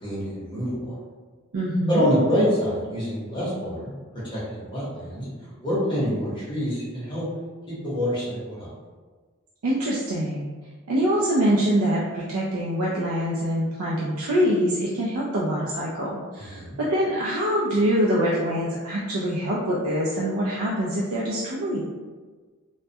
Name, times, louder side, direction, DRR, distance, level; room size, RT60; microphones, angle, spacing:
voice 1, 0.0-1.0 1.9-3.9 4.2-7.2 7.8-8.7 16.4-16.8, equal, 25° left, -9 dB, 0.8 m, -26 dB
voice 2, 1.5-2.0 9.6-10.5 10.9-21.8, equal, 80° right, -5 dB, 0.4 m, -24 dB
2.2 x 2.1 x 2.6 m, 1.4 s
head